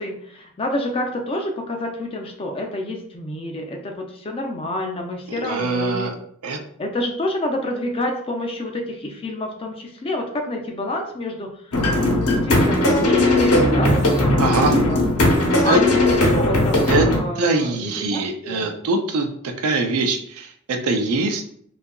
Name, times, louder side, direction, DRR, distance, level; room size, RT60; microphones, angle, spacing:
voice 1, 0.0-6.1 6.8-11.8 12.2-14.3 14.7-15.0 15.6-16.0 16.3-18.7, left 1 dB, 25° left, 2 dB, 0.4 m, -28 dB
voice 2, 5.3-6.1 6.4-6.6 14.4-14.8 15.6-15.8 16.9-17.1 17.4-19.3 19.6-21.4, right 3 dB, 75° right, 5 dB, 0.4 m, -22 dB
sound 1, 11.7-17.2, left 1 dB, 75° left, 0.8 m, -18 dB
2.7 x 2.4 x 2.2 m, 0.64 s
head